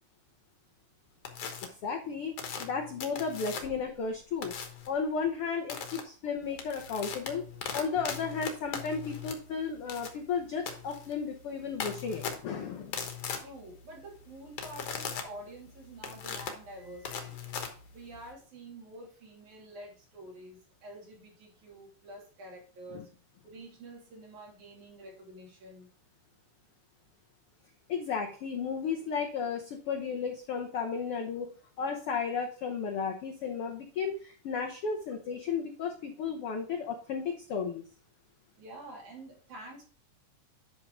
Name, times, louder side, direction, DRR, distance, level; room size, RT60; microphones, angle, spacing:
sound 1, 1.2-1.7 2.4-3.9 4.4-4.9 5.7-6.0 6.4-18.3, left 7 dB, 60° left, 1.9 m, -39 dB
voice 1, 1.8-2.3 2.6-4.6 4.9-7.4 7.7-13.0 22.9-23.0 27.9-31.5 31.8-37.8, left 5 dB, 75° left, 3 dB, 1.3 m, -34 dB
voice 2, 13.4-17.4 17.9-23.1 23.4-25.9 38.6-39.8, right 1 dB, 65° right, -2 dB, 4.4 m, -48 dB
10.5 x 3.9 x 4.9 m, 0.40 s
omnidirectional pair, 3.8 m